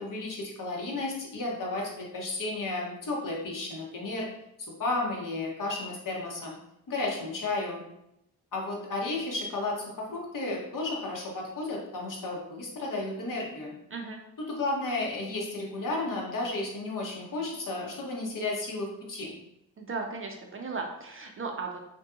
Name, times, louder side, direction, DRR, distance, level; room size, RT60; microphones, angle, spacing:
voice 1, 0.0-4.3 4.8-6.5 6.9-7.8 8.5-13.7 14.4-19.3, left 2 dB, 55° left, -2 dB, 1.0 m, -33 dB
voice 2, 19.8-21.8, right 4 dB, 35° right, 2 dB, 0.5 m, -36 dB
2.6 x 2.5 x 2.4 m, 0.80 s
supercardioid pair, 40°, 39 cm